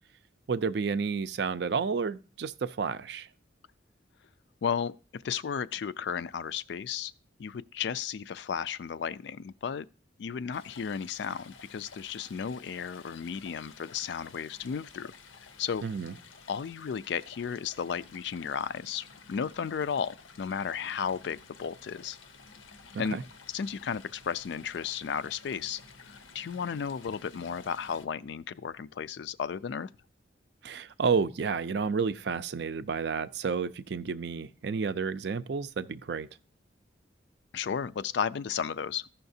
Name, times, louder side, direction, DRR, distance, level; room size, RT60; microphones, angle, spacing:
voice 1, 0.5-3.3 15.8-16.1 22.9-23.2 30.6-36.3, right 5 dB, 60° right, 0.4 m, -31 dB
voice 2, 4.6-7.1 7.4-9.9 10.2-15.1 15.6-15.8 16.5-22.2 23.0-23.2 23.5-25.8 26.1-29.9 37.5-39.1, left 7 dB, 65° left, 0.3 m, -34 dB
Stream, 10.5-28.1, left 4 dB, 90° left, 0.8 m, -53 dB
14.5 x 5.7 x 2.7 m
head